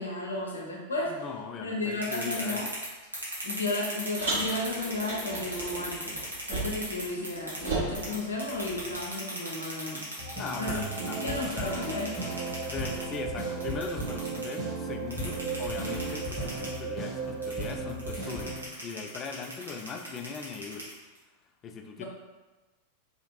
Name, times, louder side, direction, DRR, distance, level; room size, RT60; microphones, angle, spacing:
voice 1, 0.0-1.2 1.6-2.7 3.4-6.2 6.5-10.0 10.6-12.1 22.0-22.1, left 2 dB, 75° left, -1 dB, 0.6 m, -33 dB
voice 2, 1.1-2.7 10.4-11.8 12.7-20.9 21.6-22.0, left 5 dB, 30° left, 4 dB, 0.3 m, -40 dB
sound 1, 1.8-7.7 7.9-14.5 15.1-16.8 17.4-21.2, right 1 dB, 80° right, 0.8 m, -38 dB
Car, 4.2-7.0 7.2-9.1, right 2 dB, 60° right, 1.4 m, -35 dB
sound 2, 10.2-18.7, right 3 dB, 5° right, 1.0 m, -35 dB
2.8 x 2.4 x 2.9 m, 1.2 s
figure-of-eight pair, 90°, 0 cm